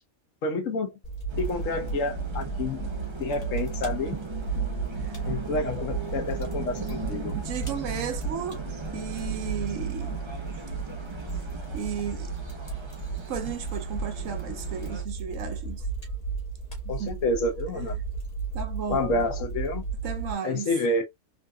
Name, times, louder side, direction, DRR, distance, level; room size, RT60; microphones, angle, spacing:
voice 1, 0.4-1.0 1.4-2.9 3.2-4.2 5.3-7.4 16.9-18.0 18.9-19.9 20.4-21.0, left 2 dB, 65° left, 1.1 m, -29 dB
Fire, 1.0-20.3, right 4 dB, 30° left, 1.0 m, -34 dB
sound 1, 1.3-15.0, right 3 dB, 45° right, 0.3 m, -40 dB
voice 2, 7.3-8.6 8.9-10.2 11.7-12.3 13.3-15.9 16.8-17.1 18.5-19.2 20.0-20.7, right 7 dB, 65° right, 1.0 m, -34 dB
3.8 x 2.5 x 2.2 m
omnidirectional pair, 1.5 m